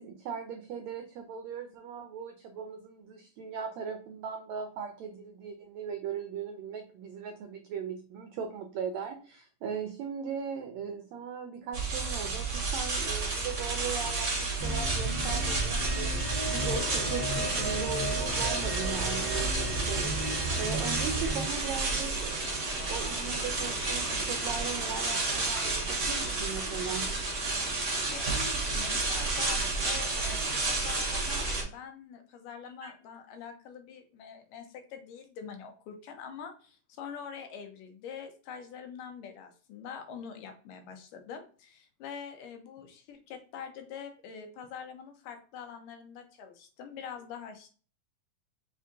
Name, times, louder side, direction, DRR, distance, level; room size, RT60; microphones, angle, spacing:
voice 1, 0.0-16.1 16.5-22.4 22.9-27.1 32.8-32.9, right 6 dB, 85° right, 5 dB, 1.5 m, -38 dB
sound 1, 11.7-31.6, right 3 dB, 65° right, 0.7 m, -31 dB
sound 2, 14.6-21.4, right 2 dB, 25° left, 1.0 m, -34 dB
sound 3, 16.5-31.7, equal, ahead, 0.8 m, -45 dB
voice 2, 27.9-47.7, left 7 dB, 80° left, 5 dB, 2.4 m, -44 dB
5.4 x 3.6 x 2.6 m, 0.39 s
omnidirectional pair, 3.8 m